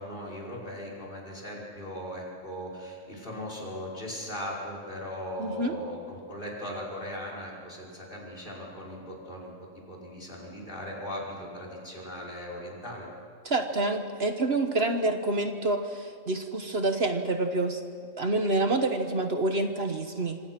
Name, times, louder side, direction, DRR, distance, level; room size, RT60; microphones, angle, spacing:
voice 1, 0.0-9.5 9.9-13.1, equal, 40° left, -2 dB, 5.7 m, -38 dB
voice 2, 5.4-5.8 13.4-17.8 18.2-20.4, right 2 dB, 55° right, 6 dB, 1.5 m, -27 dB
26.5 x 25.5 x 6.1 m, 2.3 s
omnidirectional pair, 1.3 m